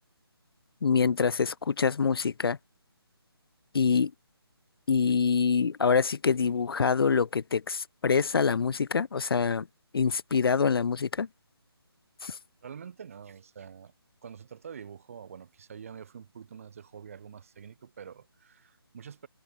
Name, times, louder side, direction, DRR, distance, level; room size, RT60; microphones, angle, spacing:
voice 1, 0.8-2.6 3.7-4.1 4.9-9.7 9.9-11.3 12.2-12.4, left 5 dB, 65° left, 0.4 m, -25 dB
voice 2, 12.6-13.9 14.2-19.3, right 7 dB, 35° right, 2.4 m, -46 dB
figure-of-eight pair, 170°, 13 cm